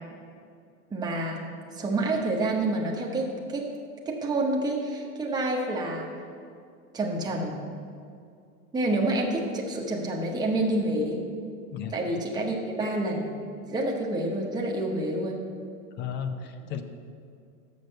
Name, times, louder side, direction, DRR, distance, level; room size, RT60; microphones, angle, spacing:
voice 1, 0.9-1.4 1.7-3.7 4.1-6.1 6.9-7.6 8.7-11.2 11.9-13.3 13.7-15.4, right 2 dB, 10° right, -1 dB, 0.9 m, -28 dB
voice 2, 16.0-16.8, left 7 dB, 25° left, 8 dB, 0.5 m, -33 dB
6.7 x 6.4 x 6.5 m, 2.3 s
hypercardioid pair, 120°, 43 cm